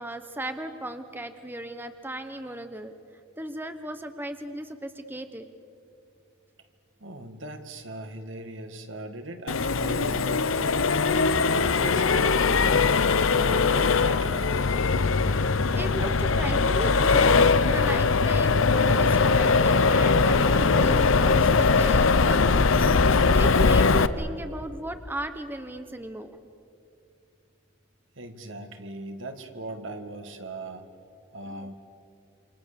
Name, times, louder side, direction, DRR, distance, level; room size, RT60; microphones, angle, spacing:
voice 1, 0.0-2.9 3.4-5.4 15.7-17.2 17.6-22.4 23.0-26.4 31.6-31.7, right 1 dB, 10° right, 8 dB, 0.9 m, -36 dB
voice 2, 7.0-10.8 11.5-12.8 13.3-14.7 28.2-30.8 31.3-31.7, right 1 dB, 65° right, 6 dB, 2.0 m, -38 dB
Accelerating revving vroom, 9.5-24.1, left 4 dB, 75° left, 0.8 m, -21 dB
28.5 x 26.5 x 7.0 m, 2.5 s
head